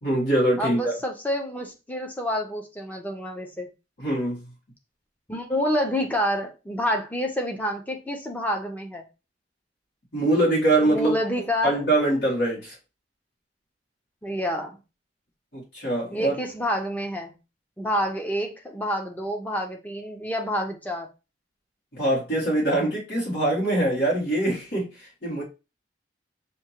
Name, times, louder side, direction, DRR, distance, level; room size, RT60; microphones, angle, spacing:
voice 1, 0.0-0.9 4.0-4.5 10.1-11.1 11.6-12.7 15.5-16.3 21.9-25.4, right 1 dB, 60° left, 2.2 m, -23 dB
voice 2, 0.6-3.7 5.3-9.0 10.8-11.8 14.2-14.8 16.1-17.3 17.8-21.1, equal, 10° left, 0.8 m, -28 dB
6.3 x 2.8 x 3.0 m
head